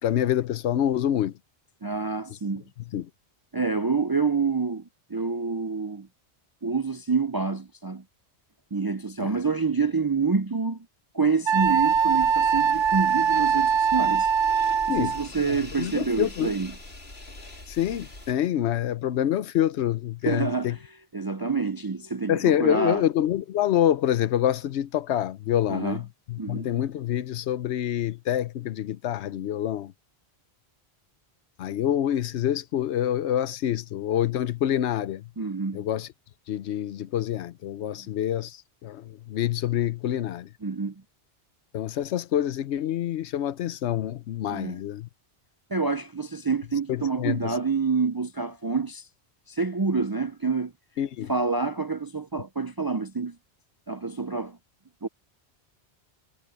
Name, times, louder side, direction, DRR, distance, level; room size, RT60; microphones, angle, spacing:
voice 1, 0.0-1.3 2.9-3.1 9.2-9.4 14.9-15.1 15.5-16.5 17.7-20.8 22.3-29.9 31.6-35.3 35.7-36.1 36.5-40.5 41.7-45.1 46.9-47.5 51.0-51.3, left 11 dB, 90° left, 1.0 m, -26 dB
voice 2, 1.8-2.6 3.5-6.1 6.6-8.0 8.7-10.9 11.1-14.3 14.9-16.7 20.2-20.8 21.1-23.0 25.7-26.0 26.4-26.7 35.4-35.8 40.6-40.9 44.5-44.8 45.7-49.1 49.5-50.7 51.3-53.4 53.9-54.6 55.0-55.1, right 4 dB, 35° right, 0.3 m, -27 dB
Wind instrument woodwind instrument, 11.5-15.3, right 7 dB, 60° right, 0.7 m, -22 dB
sound 1, 11.6-18.3, left 2 dB, 70° left, 3.8 m, -43 dB
omnidirectional pair, 1.1 m